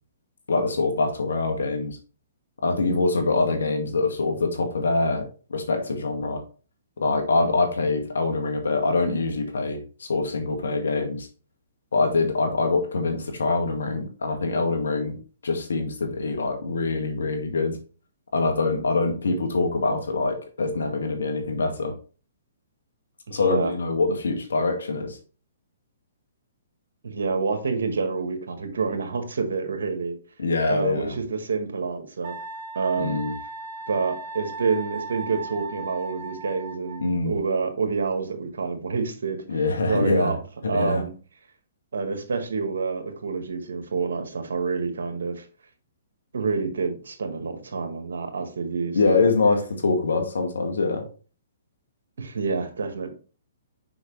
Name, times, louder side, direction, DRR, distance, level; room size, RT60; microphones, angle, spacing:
voice 1, 0.5-2.0 2.6-6.4 7.0-11.3 11.9-15.2 15.4-17.8 18.3-21.9 23.3-25.2 30.4-31.1 33.0-33.3 37.0-37.4 39.5-40.3 40.6-41.0 48.9-51.1, left 3 dB, 80° left, 4 dB, 1.8 m, -24 dB
voice 2, 23.3-23.7 27.0-30.2 30.7-32.3 32.7-33.2 33.9-40.4 40.6-41.1 41.9-45.5 46.3-49.3 52.2-53.1, right 4 dB, 75° right, 6 dB, 1.7 m, -28 dB
Wind instrument woodwind instrument, 32.2-37.2, right 3 dB, 55° right, 1.0 m, -37 dB
6.3 x 5.4 x 3.2 m, 0.37 s
hypercardioid pair, 135°, 0 cm